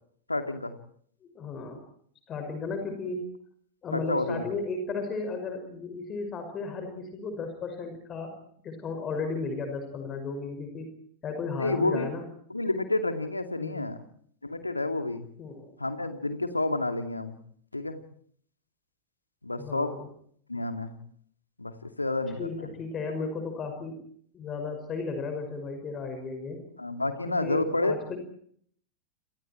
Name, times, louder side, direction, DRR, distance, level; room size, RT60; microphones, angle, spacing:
voice 1, 0.3-0.7 3.9-4.5 11.6-12.1 12.5-14.0 14.4-15.3 15.8-17.4 17.7-18.0 19.4-20.0 20.5-21.0 21.6-22.5 23.2-23.3 26.8-28.0, left 2 dB, 85° left, 7 dB, 2.5 m, -29 dB
voice 2, 1.2-1.8 2.3-3.3 3.8-8.4 8.6-10.9 11.2-12.2 13.6-13.9 15.4-15.7 19.6-20.1 22.4-24.0 24.3-26.6 27.4-28.2, left 4 dB, 25° left, 6 dB, 6.0 m, -35 dB
29.0 x 28.5 x 4.6 m, 0.63 s
figure-of-eight pair, 90°, 0 cm